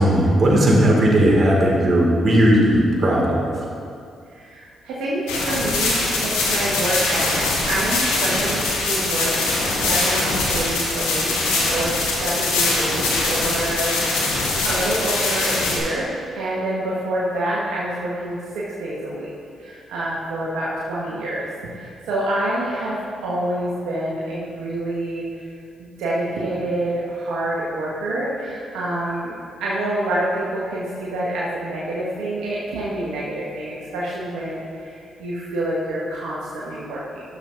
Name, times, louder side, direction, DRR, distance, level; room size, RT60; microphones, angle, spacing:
voice 1, 0.0-3.5, equal, 50° right, -2 dB, 2.0 m, -16 dB
voice 2, 4.3-9.3 9.8-11.9 12.2-16.1 16.3-19.3 19.6-21.4 21.7-25.4 25.8-29.3 29.6-37.2, right 1 dB, 80° right, -7 dB, 1.2 m, -27 dB
sound 1, 5.3-15.8, left 2 dB, 85° left, 1.2 m, -22 dB
12.0 x 7.0 x 2.6 m, 2.4 s
hypercardioid pair, 45°, 0 cm